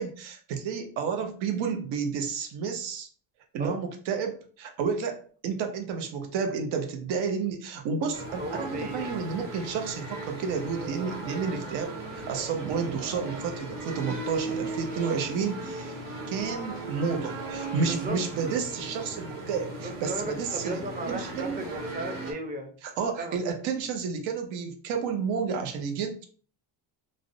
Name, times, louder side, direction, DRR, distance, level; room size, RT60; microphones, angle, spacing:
voice 1, 0.0-3.1 3.5-15.9 16.3-20.8 21.1-21.6 22.8-26.3, right 5 dB, 80° right, 5 dB, 0.7 m, -31 dB
sound 1, 8.1-22.3, right 2 dB, 45° right, 1.1 m, -37 dB
voice 2, 8.4-9.2 15.0-15.3 16.2-16.3 17.8-18.2 19.8-22.7 23.2-23.4, right 2 dB, 20° right, 4 dB, 0.5 m, -35 dB
2.4 x 2.0 x 2.5 m, 0.43 s
cardioid pair, 95°, 45 cm